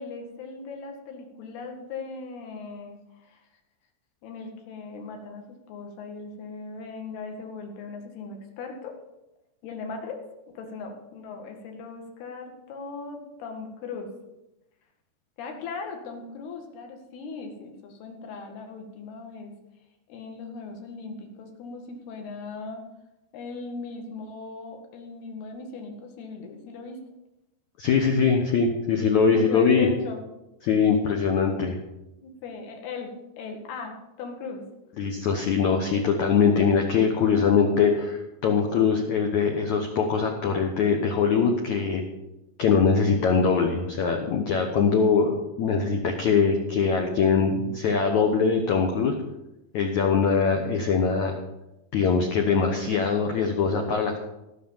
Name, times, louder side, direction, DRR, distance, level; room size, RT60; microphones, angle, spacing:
voice 1, 0.0-3.4 4.2-8.9 9.6-10.2 10.6-14.1 15.4-19.5 20.1-22.8 23.3-27.0 29.3-30.2 32.2-34.6, left 4 dB, 65° left, 3 dB, 3.7 m, -38 dB
voice 2, 27.8-29.9 30.6-31.8 35.0-42.0 42.6-49.1 49.7-51.3 51.9-54.2, left 5 dB, 80° left, 3 dB, 1.6 m, -22 dB
18.0 x 6.2 x 7.2 m, 0.95 s
omnidirectional pair, 5.2 m